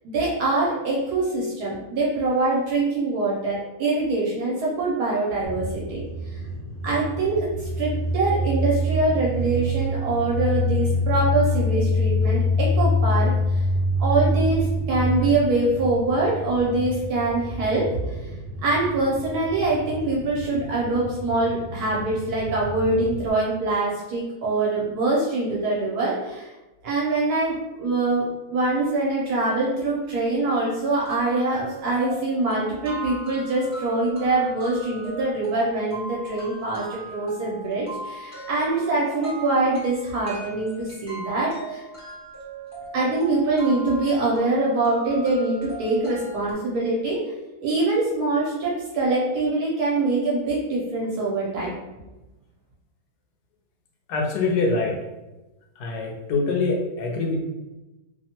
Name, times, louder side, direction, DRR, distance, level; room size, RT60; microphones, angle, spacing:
voice 1, 0.1-6.0 6.3-6.4 6.8-7.5 7.8-13.3 14.0-18.2 18.6-26.5 26.8-41.8 42.9-47.2 47.6-51.7, right 2 dB, 75° right, -5 dB, 1.1 m, -24 dB
sound 1, 5.4-23.3, left 1 dB, 40° left, 1.1 m, -26 dB
sound 2, 30.1-30.2 30.5-30.6 31.0-46.5, right 3 dB, 10° right, 0.8 m, -39 dB
voice 2, 54.1-55.0 55.8-57.4, left 3 dB, 80° left, 1 dB, 1.2 m, -24 dB
2.9 x 2.1 x 2.8 m, 1.0 s
omnidirectional pair, 1.7 m